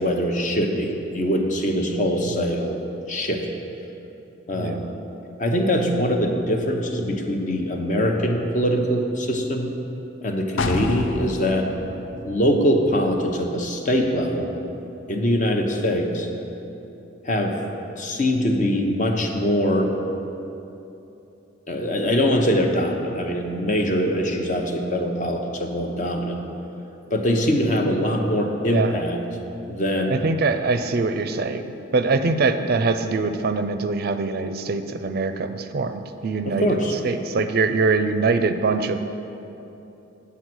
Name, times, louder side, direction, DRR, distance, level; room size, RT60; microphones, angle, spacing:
voice 1, 0.0-2.8 3.1-3.5 4.5-4.8 5.4-9.7 10.2-11.7 12.2-14.5 15.1-16.3 17.2-17.6 18.0-19.9 21.7-26.4 27.1-29.2 29.7-30.2 36.4-36.9, equal, 40° left, 3 dB, 0.9 m, -23 dB
sound 1, 10.6-14.3 14.7-14.8, left 3 dB, 85° left, 0.6 m, -31 dB
voice 2, 30.1-39.0, right 3 dB, 55° right, 9 dB, 0.4 m, -23 dB
8.4 x 8.1 x 6.1 m, 2.9 s
head